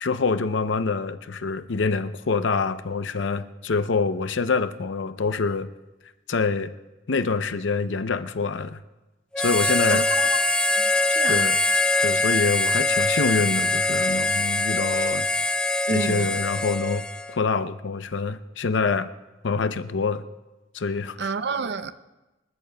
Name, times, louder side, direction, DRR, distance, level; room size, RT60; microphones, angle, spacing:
voice 1, 0.0-5.7 6.3-6.7 7.1-8.8 9.4-10.1 11.3-11.6 12.0-15.3 15.9-19.1 19.4-20.2 20.7-21.3, left 4 dB, 80° left, 0.6 m, -26 dB
Harmonica, 9.3-17.4, left 2 dB, 5° left, 0.4 m, -23 dB
voice 2, 11.1-11.4 15.9-16.4 21.2-21.9, right 4 dB, 65° right, 0.5 m, -28 dB
26.5 x 13.5 x 2.2 m
head